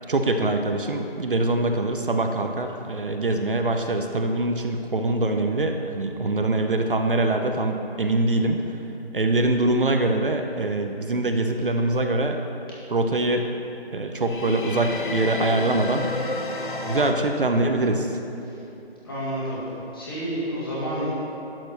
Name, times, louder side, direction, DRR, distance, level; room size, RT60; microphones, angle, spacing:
voice 1, 0.1-8.8 9.1-12.4 12.9-13.5 13.9-16.1 16.9-18.2, right 2 dB, 60° right, 5 dB, 0.7 m, -23 dB
sound 1, 14.2-17.1, left 3 dB, 55° left, 1.0 m, -31 dB
voice 2, 19.0-19.6 19.9-21.2, right 1 dB, 20° left, -8 dB, 2.0 m, -29 dB
11.5 x 4.8 x 6.5 m, 2.9 s
hypercardioid pair, 180°, 31 cm